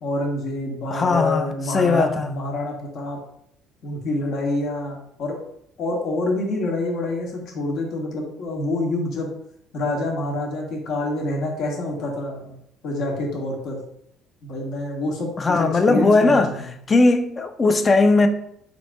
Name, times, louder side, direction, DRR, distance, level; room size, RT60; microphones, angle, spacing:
voice 1, 0.0-3.2 3.8-5.4 5.8-9.3 9.7-12.6 12.8-13.8 14.4-16.7, left 2 dB, 65° left, 1.1 m, -27 dB
voice 2, 0.9-2.3 15.4-16.5 16.9-18.3, left 3 dB, 30° left, 0.5 m, -18 dB
4.1 x 2.7 x 3.3 m
supercardioid pair, 70°, 0 cm